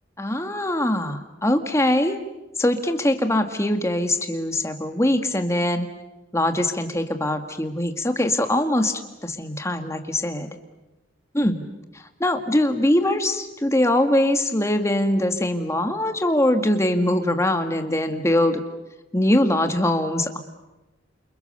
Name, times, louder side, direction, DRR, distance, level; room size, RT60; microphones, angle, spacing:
voice 1, 0.2-2.2 2.6-5.9 6.3-10.5 11.3-11.6 12.0-18.6 19.1-20.4, left 1 dB, 15° left, 6 dB, 1.9 m, -22 dB
29.5 x 27.5 x 6.9 m, 1.0 s
head